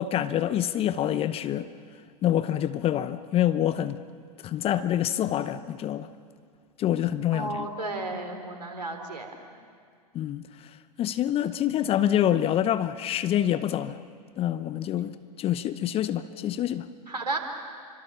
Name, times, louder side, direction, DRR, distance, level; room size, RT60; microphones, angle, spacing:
voice 1, 0.0-1.7 2.2-4.0 4.4-6.1 6.8-7.7 10.1-10.4 11.0-14.0 14.4-16.9, left 11 dB, 30° left, 0.9 m, -26 dB
voice 2, 7.3-9.5 17.1-17.4, right 2 dB, 85° right, 3.8 m, -33 dB
28.5 x 25.5 x 7.0 m
figure-of-eight pair, 95°, 21 cm